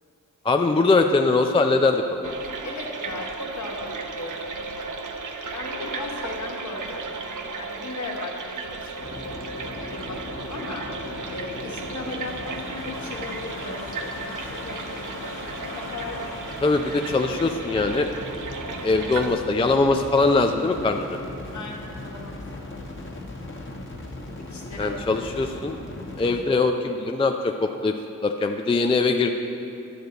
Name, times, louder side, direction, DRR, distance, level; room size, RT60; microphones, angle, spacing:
voice 1, 0.4-2.3 16.6-18.1 18.8-21.2 24.8-25.8 26.2-28.0 28.2-29.3, left 3 dB, 15° left, 4 dB, 0.4 m, -22 dB
sound 1, 2.2-19.3, right 4 dB, 60° right, 0.7 m, -35 dB
voice 2, 2.6-4.7 5.5-9.1 9.7-10.8 11.3-16.2 18.8-19.1 21.5-23.1 24.5-25.1, left 2 dB, 55° left, -1 dB, 1.6 m, -38 dB
sound 2, 9.0-26.4, left 2 dB, 35° left, 1.4 m, -38 dB
10.0 x 6.6 x 4.0 m, 2.8 s
cardioid pair, 50°, 35 cm